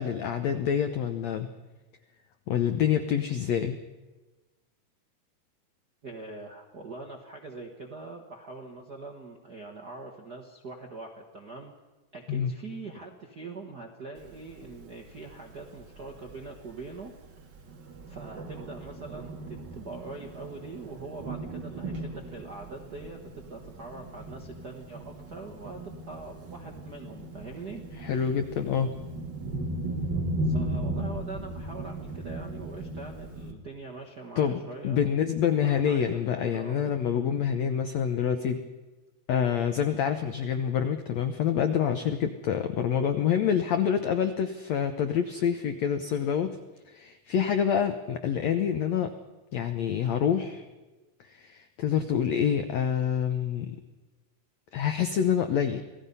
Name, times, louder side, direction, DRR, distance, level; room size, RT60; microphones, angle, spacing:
voice 1, 0.0-1.5 2.5-3.8 12.3-12.5 28.0-28.9 34.4-38.6 39.3-46.6 46.9-49.1 49.5-50.7 51.3-53.8 54.7-55.8, left 8 dB, 90° left, 8 dB, 1.5 m, -27 dB
voice 2, 6.0-11.7 12.1-17.1 18.1-28.3 30.4-35.1 35.6-36.9, right 3 dB, 60° right, 0 dB, 1.0 m, -43 dB
Thunder, 14.2-33.5, right 1 dB, 40° right, 1.8 m, -37 dB
27.0 x 17.5 x 5.5 m, 1.2 s
omnidirectional pair, 4.3 m